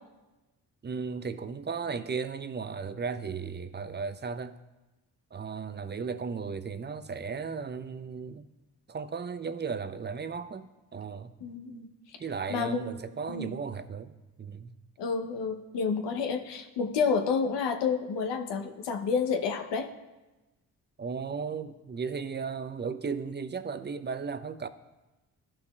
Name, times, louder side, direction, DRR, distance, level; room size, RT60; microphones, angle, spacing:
voice 1, 0.8-4.6 5.3-8.5 8.9-11.3 12.2-14.7 21.0-24.7, right 5 dB, 25° right, 0.6 m, -35 dB
voice 2, 11.4-11.9 12.5-12.8 13.3-13.5 15.0-19.9, left 5 dB, 75° left, 0.9 m, -29 dB
13.5 x 6.0 x 2.3 m
hypercardioid pair, 45°, 43 cm